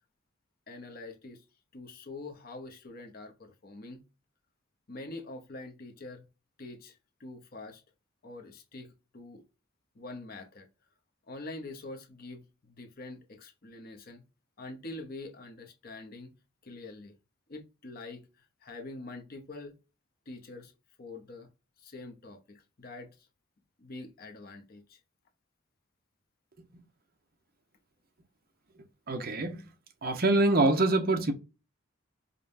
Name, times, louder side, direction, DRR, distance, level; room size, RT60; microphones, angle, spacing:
voice 1, 0.7-1.4 1.7-4.0 4.9-6.2 6.6-7.8 8.2-9.4 9.9-10.7 11.3-14.2 14.6-16.3 16.6-17.1 17.5-18.3 18.6-19.8 20.3-20.7 21.0-21.5 21.8-23.2 23.8-25.0, left 2 dB, 45° left, 0.7 m, -45 dB
voice 2, 29.1-29.7 30.0-31.3, right 2 dB, 45° right, 0.8 m, -25 dB
5.1 x 2.2 x 2.6 m
head